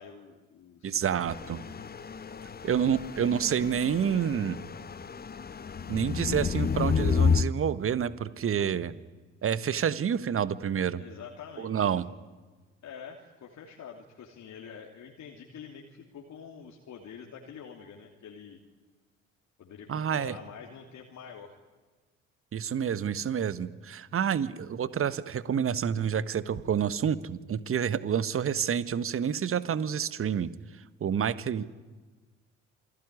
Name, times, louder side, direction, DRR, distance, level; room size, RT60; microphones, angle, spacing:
voice 1, 0.0-1.2 11.0-12.0 12.8-18.6 19.6-21.6, left 7 dB, 50° left, 1 dB, 3.0 m, -46 dB
voice 2, 0.8-1.6 2.6-4.6 5.9-8.9 9.4-11.0 11.6-12.1 19.9-20.3 22.5-30.5 31.0-31.7, right 8 dB, 35° right, 16 dB, 1.4 m, -28 dB
sound 1, 1.3-7.4, left 6 dB, 25° left, 1.1 m, -30 dB
27.5 x 21.5 x 9.8 m, 1.3 s
figure-of-eight pair, 50°, 37 cm